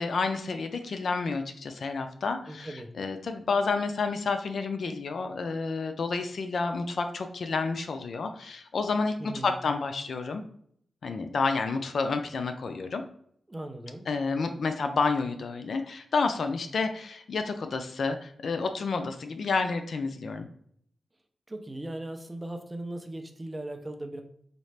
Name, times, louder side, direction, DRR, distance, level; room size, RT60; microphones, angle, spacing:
voice 1, 0.0-10.4 11.0-13.0 14.1-20.5, left 4 dB, 65° left, 7 dB, 0.4 m, -30 dB
voice 2, 2.5-2.9 9.2-9.5 13.5-14.1 21.5-24.2, right 1 dB, 15° right, 5 dB, 0.5 m, -38 dB
4.1 x 2.4 x 3.2 m, 0.64 s
wide cardioid pair, 120°, 0 cm